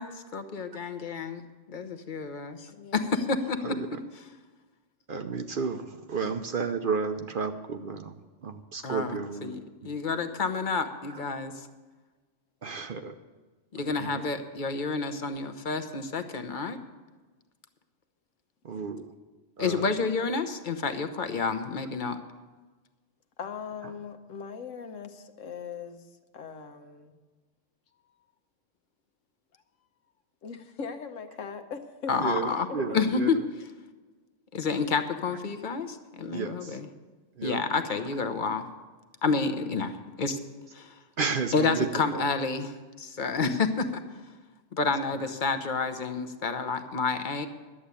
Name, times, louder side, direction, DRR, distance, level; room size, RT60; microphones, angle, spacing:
voice 1, 0.0-3.6 8.8-11.5 13.7-16.8 19.6-22.2 32.1-32.7 32.9-33.4 34.5-36.9 37.4-38.6 39.2-40.4 40.7-40.9 41.5-44.0 44.7-47.5, left 4 dB, 45° left, 9 dB, 0.9 m, -29 dB
voice 2, 2.7-3.4 23.4-26.1 26.3-27.1 30.4-32.1 32.4-33.0, left 6 dB, 85° left, 7 dB, 1.3 m, -40 dB
voice 3, 3.6-4.0 5.1-8.1 8.4-9.5 9.8-10.0 11.1-11.2 12.6-13.1 14.0-14.2 18.6-19.1 19.6-19.9 32.2-33.3 36.3-36.8 37.4-37.6 41.2-42.3, right 5 dB, 55° right, 8 dB, 0.7 m, -32 dB
11.0 x 7.8 x 8.4 m, 1.3 s
omnidirectional pair, 1.3 m